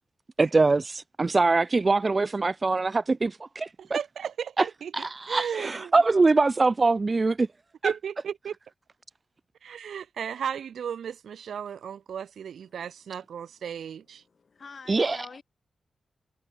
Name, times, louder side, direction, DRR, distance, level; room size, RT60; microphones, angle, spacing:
voice 1, 0.4-3.7 4.6-4.7 4.9-7.5 7.8-7.9 14.9-15.2, right 3 dB, 25° right, 0.5 m, -23 dB
voice 2, 3.8-4.9 5.3-6.0 7.8-8.5 9.6-14.2, right 8 dB, 75° right, 2.1 m, -35 dB
voice 3, 14.2-15.4, left 5 dB, 40° left, 7.5 m, -46 dB
wide cardioid pair, 180°, 0 cm